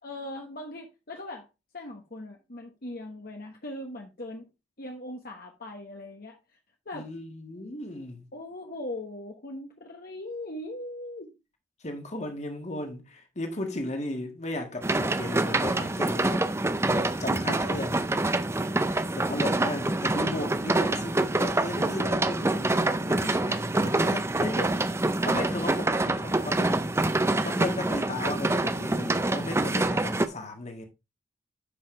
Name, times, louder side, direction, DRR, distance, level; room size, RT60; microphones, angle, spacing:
voice 1, 0.0-1.5 1.7-4.5 4.8-6.4 6.8-7.1 8.3-11.3 17.3-17.8, left 1 dB, 55° left, 1.3 m, -39 dB
voice 2, 6.9-8.3 11.8-16.5 16.9-18.0 19.1-26.8 27.4-30.9, left 1 dB, 40° left, 1.8 m, -35 dB
sound 1, 14.8-30.3, right 2 dB, 15° right, 0.5 m, -26 dB
10.0 x 5.5 x 3.3 m
head